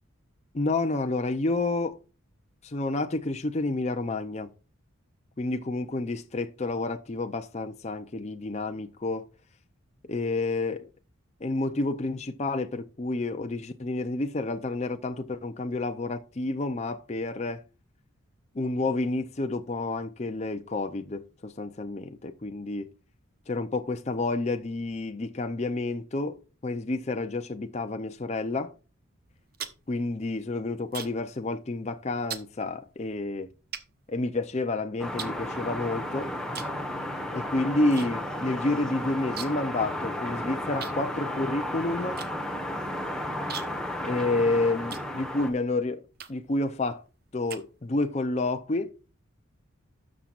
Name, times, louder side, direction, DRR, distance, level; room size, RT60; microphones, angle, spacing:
voice 1, 0.5-2.0 2.6-4.5 5.4-9.3 10.1-10.9 11.4-17.6 18.5-22.9 23.5-28.7 29.9-33.5 34.1-36.3 37.3-42.2 44.0-46.0 46.3-47.0 47.3-49.0, left 2 dB, 30° left, 0.5 m, -29 dB
sound 1, 29.3-31.3 31.6-31.9 32.3-32.5 33.1-33.2 33.7-34.7 35.2-36.0 36.5-36.8 37.1-38.1 38.4-38.5 38.7-39.7 40.0-40.1 40.8-45.6 46.1-46.6 47.1-48.1, right 8 dB, 45° right, 1.0 m, -41 dB
sound 2, 35.0-45.5, left 1 dB, 5° left, 1.3 m, -33 dB
13.0 x 7.3 x 2.5 m
head